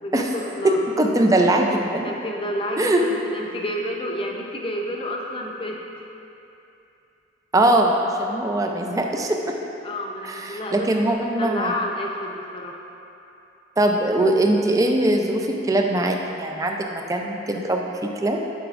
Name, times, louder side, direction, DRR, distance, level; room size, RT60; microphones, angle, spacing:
voice 1, 0.0-0.8 2.0-5.8 9.8-12.7, left 1 dB, 30° left, -1 dB, 0.6 m, -30 dB
voice 2, 0.6-2.1 2.8-3.0 7.5-9.4 10.3-11.7 13.8-18.4, right 1 dB, 20° right, 2 dB, 0.4 m, -21 dB
11.0 x 4.9 x 2.5 m, 2.8 s
head